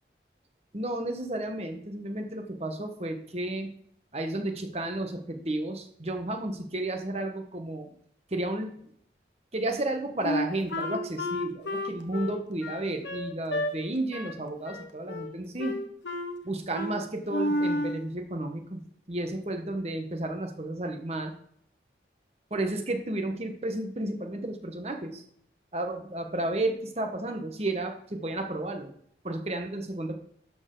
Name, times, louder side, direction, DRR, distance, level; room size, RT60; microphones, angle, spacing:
voice 1, 0.7-3.7 4.1-7.9 8.3-8.7 9.5-15.8 16.4-18.8 19.1-21.3 22.5-25.2 25.7-28.9 29.2-30.2, right 2 dB, 35° right, 5 dB, 1.2 m, -32 dB
Wind instrument woodwind instrument, 10.2-13.7 14.1-14.4 14.6-15.3 15.6-16.4 16.7-17.0 17.3-18.0, left 1 dB, 90° left, 1.1 m, -31 dB
12.0 x 6.7 x 3.9 m, 0.67 s
head